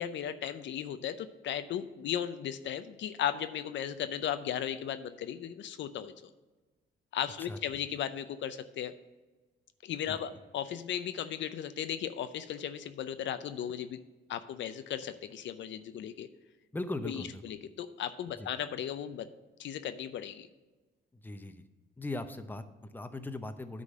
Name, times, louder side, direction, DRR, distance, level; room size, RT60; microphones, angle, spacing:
voice 1, 0.0-6.3 7.1-8.9 9.8-14.0 14.3-16.3 17.0-19.3 19.6-20.5, left 9 dB, 70° left, 11 dB, 0.6 m, -36 dB
voice 2, 16.7-17.4 18.4-18.5 21.1-21.7 22.0-23.8, left 2 dB, 10° left, 9 dB, 0.7 m, -39 dB
9.7 x 3.9 x 7.4 m, 1.2 s
cardioid pair, 90°, 20 cm